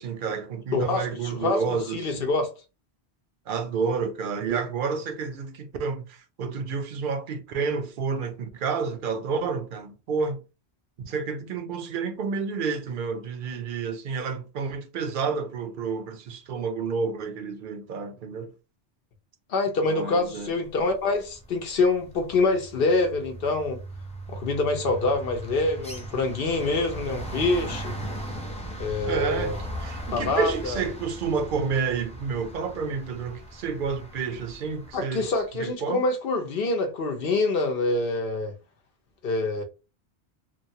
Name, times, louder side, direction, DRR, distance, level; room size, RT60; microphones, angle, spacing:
voice 1, 0.0-2.3 3.5-10.4 11.0-18.5 19.9-20.6 29.0-29.5 29.8-35.3 35.5-36.0, right 5 dB, 60° right, 0.6 m, -30 dB
voice 2, 0.7-2.5 19.5-23.8 24.3-28.0 28.8-29.6 30.1-30.8 34.9-38.5 39.2-39.6, left 3 dB, 60° left, 0.9 m, -26 dB
sound 1, 21.2-21.5 21.8-35.0, right 1 dB, 10° left, 0.4 m, -38 dB
3.1 x 2.1 x 2.7 m
omnidirectional pair, 1.1 m